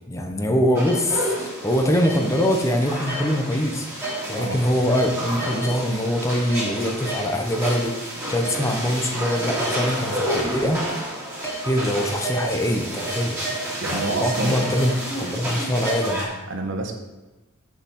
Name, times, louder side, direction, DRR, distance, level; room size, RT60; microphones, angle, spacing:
voice 1, 0.1-10.8 11.4-13.4 13.9-16.3, equal, 15° left, 3 dB, 0.8 m, -23 dB
sound 1, 0.7-16.2, right 1 dB, 15° right, 2.9 m, -29 dB
voice 2, 13.8-14.6 16.5-16.9, right 2 dB, 55° right, 4 dB, 1.1 m, -28 dB
7.0 x 5.2 x 7.1 m, 1.1 s
head